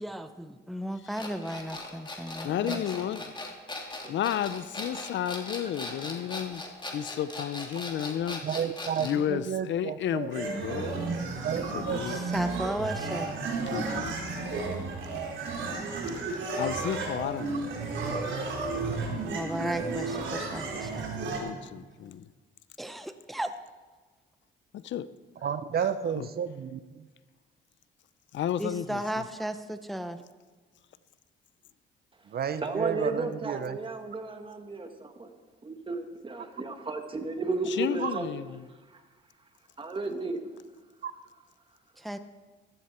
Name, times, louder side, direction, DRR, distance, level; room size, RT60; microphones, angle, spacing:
voice 1, 0.0-2.8 12.1-13.3 19.2-21.1 22.8-23.5 28.6-30.2 42.0-42.2, equal, ahead, 9 dB, 0.8 m, -35 dB
sound 1, 1.1-9.2, left 2 dB, 25° left, 2.7 m, -39 dB
voice 2, 2.4-3.3 4.1-6.6 6.9-8.4 9.0-11.1 11.7-12.2 13.7-14.6 16.1-17.6 21.4-22.3 24.7-25.1 26.2-26.3 28.3-29.0 37.7-38.7, left 10 dB, 70° left, 15 dB, 0.6 m, -32 dB
voice 3, 8.4-10.3 11.4-12.2 25.4-27.0 32.3-33.8 36.4-36.5 38.0-38.1 41.0-41.1, right 8 dB, 50° right, 13 dB, 0.6 m, -32 dB
sound 2, 10.3-21.4, right 3 dB, 75° right, 4.0 m, -33 dB
voice 4, 32.6-35.4 35.6-38.3 38.9-39.0 39.8-40.4, right 3 dB, 25° right, 5 dB, 2.0 m, -33 dB
15.5 x 14.0 x 4.4 m, 1.3 s
cardioid pair, 90°, 20 cm